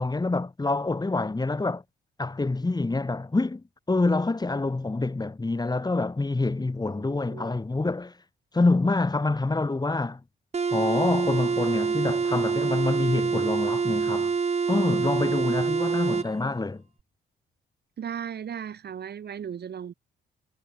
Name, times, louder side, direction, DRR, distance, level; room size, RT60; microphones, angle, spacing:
voice 1, 0.0-1.8 2.2-8.1 8.5-10.2 10.7-14.3 14.7-16.8, left 3 dB, 20° left, 7.5 m, -26 dB
voice 2, 6.9-7.6 18.0-19.9, right 8 dB, 55° right, 6.7 m, -37 dB
sound 1, 10.5-16.3, right 5 dB, 35° right, 2.1 m, -26 dB
cardioid pair, 90°, 20 cm